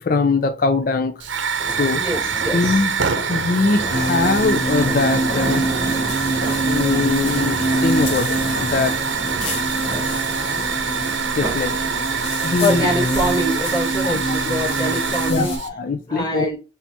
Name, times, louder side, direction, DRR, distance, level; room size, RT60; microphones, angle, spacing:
voice 1, 0.0-1.1 1.8-2.0 2.5-3.0 3.3-5.6 6.6-7.6 7.8-9.0 11.3-11.7 12.4-12.9 14.0-14.3 15.3-16.5, left 4 dB, 45° left, 0.4 m, -21 dB
Hiss / Fire, 1.2-15.7, right 6 dB, 75° right, 0.7 m, -25 dB
sound 1, 1.5-11.8 12.2-12.5, right 1 dB, 15° right, 1.9 m, -32 dB
voice 2, 1.9-2.8 12.6-15.5 16.1-16.6, equal, 20° left, 1.7 m, -24 dB
sound 2, 3.9-15.6, right 1 dB, 80° left, 1.5 m, -25 dB
4.3 x 3.4 x 2.8 m
head